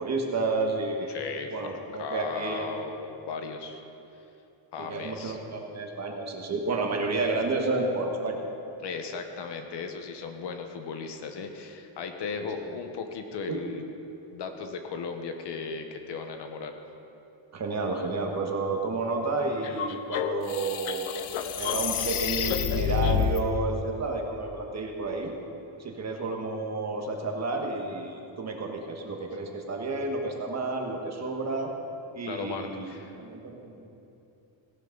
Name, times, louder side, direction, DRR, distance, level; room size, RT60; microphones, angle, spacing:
voice 1, 0.0-1.2 1.5-2.7 4.8-8.4 12.4-12.5 13.5-13.6 17.5-25.3 25.8-31.7 32.1-32.9 33.2-34.0, right 3 dB, 35° right, 2 dB, 1.5 m, -31 dB
voice 2, 1.1-3.8 4.7-5.4 8.8-13.9 14.3-16.8 32.3-33.2, left 5 dB, 55° left, 6 dB, 1.2 m, -36 dB
sound 1, 19.6-23.4, left 9 dB, 80° left, 0.9 m, -28 dB
17.0 x 12.5 x 4.0 m, 2.8 s
cardioid pair, 155°, 48 cm